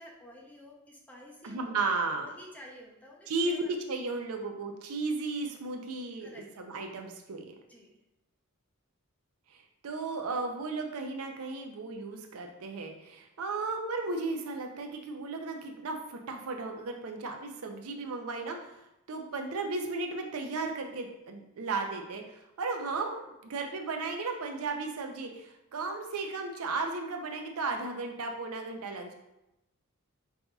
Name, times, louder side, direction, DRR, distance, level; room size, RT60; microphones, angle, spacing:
voice 1, 0.0-1.7 2.2-3.7 6.2-6.6 7.6-7.9, equal, 5° left, -2 dB, 0.6 m, -51 dB
voice 2, 1.4-2.3 3.3-7.5 9.5-18.7 19.1-29.1, right 3 dB, 90° right, 3 dB, 0.5 m, -35 dB
5.6 x 2.6 x 2.3 m, 0.89 s
head